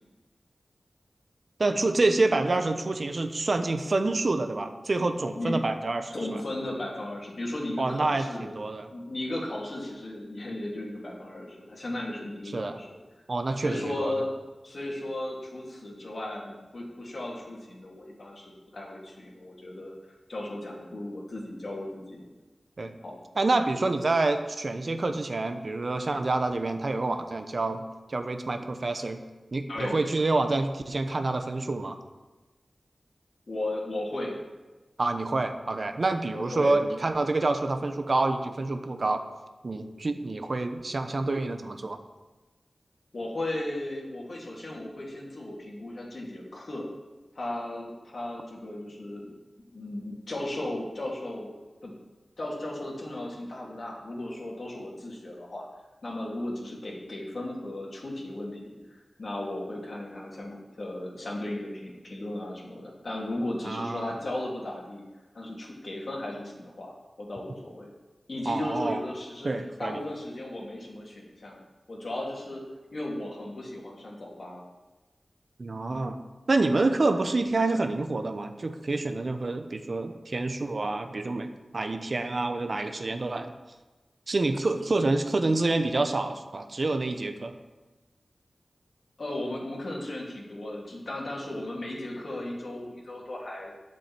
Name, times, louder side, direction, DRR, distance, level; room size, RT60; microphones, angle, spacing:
voice 1, 1.6-6.4 7.8-8.9 12.5-12.8 13.3-14.1 22.8-22.9 23.3-29.2 29.5-32.0 35.0-39.2 39.6-42.0 63.6-64.2 68.5-69.0 69.4-70.0 75.6-76.2 76.5-83.5 84.3-87.5, right 2 dB, 60° right, 8 dB, 0.9 m, -27 dB
voice 2, 6.1-8.5 8.9-13.0 13.6-14.3 14.6-19.9 20.3-22.2 23.0-23.2 29.7-30.0 33.5-34.4 36.3-36.7 43.1-46.9 47.3-49.3 49.7-51.5 51.8-51.9 52.4-55.7 56.0-65.0 65.3-66.9 67.2-67.9 68.3-69.5 69.8-71.6 71.9-72.6 72.9-74.6 89.2-93.7, left 1 dB, 65° left, -3 dB, 3.2 m, -35 dB
9.2 x 7.4 x 7.6 m, 1.2 s
cardioid pair, 45°, 0 cm